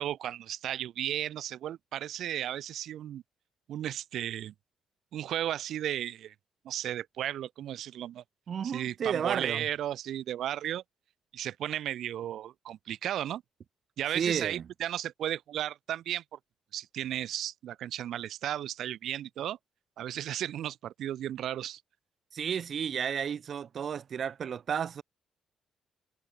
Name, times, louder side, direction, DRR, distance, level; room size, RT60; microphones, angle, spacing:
voice 1, 0.0-3.2 3.7-4.5 5.1-6.3 6.6-8.2 8.6-10.8 11.3-13.4 14.0-16.4 16.7-19.6 20.0-21.8, right 11 dB, 75° right, 0.6 m, -34 dB
voice 2, 8.5-9.7 14.1-14.6 22.3-25.0, right 8 dB, 55° right, 2.7 m, -32 dB
cardioid pair, 90°, 0 cm